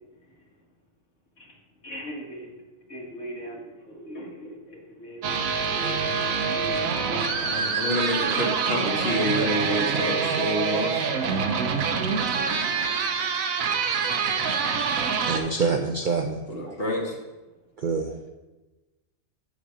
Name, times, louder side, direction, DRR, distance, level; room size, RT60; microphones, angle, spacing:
voice 1, 1.8-2.5 2.9-5.4 5.7-6.8 7.1-7.6, equal, 65° left, -2 dB, 2.2 m, -39 dB
sound 1, 5.2-15.4, right 5 dB, 85° right, 1.2 m, -26 dB
voice 2, 7.4-11.1 16.5-17.2, equal, 50° left, -1 dB, 1.8 m, -28 dB
voice 3, 15.2-16.8 17.8-18.2, right 4 dB, 55° right, 4 dB, 0.5 m, -26 dB
7.2 x 5.2 x 6.1 m, 1.1 s
omnidirectional pair, 1.4 m